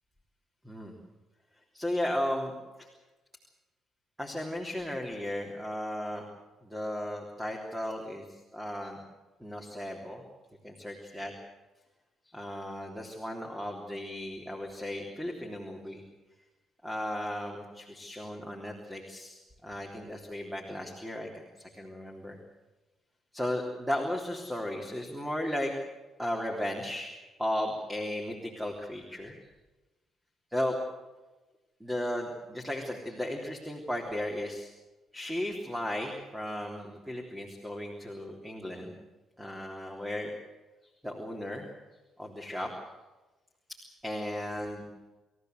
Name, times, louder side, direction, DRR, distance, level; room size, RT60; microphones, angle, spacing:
voice 1, 1.7-2.9 4.2-6.3 6.6-9.0 9.4-10.2 10.6-11.3 12.3-16.0 16.8-21.3 21.6-22.4 23.3-25.7 26.2-27.1 27.4-29.4 30.5-30.8 31.8-34.7 35.1-38.9 39.4-40.3 41.0-41.7 42.2-42.7 43.8-44.9, left 1 dB, 5° right, 1 dB, 3.5 m, -35 dB
27.5 x 15.0 x 8.1 m, 1.1 s
cardioid pair, 90°, 0 cm